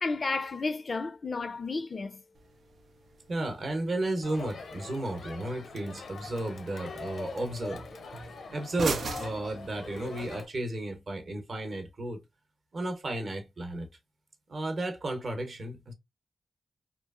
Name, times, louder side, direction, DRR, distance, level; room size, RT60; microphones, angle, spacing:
voice 1, 0.0-2.2, left 3 dB, 45° left, 0.3 m, -32 dB
sound 1, 2.3-10.3, right 4 dB, 85° right, 0.5 m, -42 dB
voice 2, 3.3-7.9 8.5-12.2 12.7-13.9 14.5-15.9, right 1 dB, 50° right, 0.8 m, -33 dB
Crowd, 4.2-10.5, left 4 dB, 90° left, 0.6 m, -43 dB
2.9 x 2.3 x 2.4 m
wide cardioid pair, 135°, 0 cm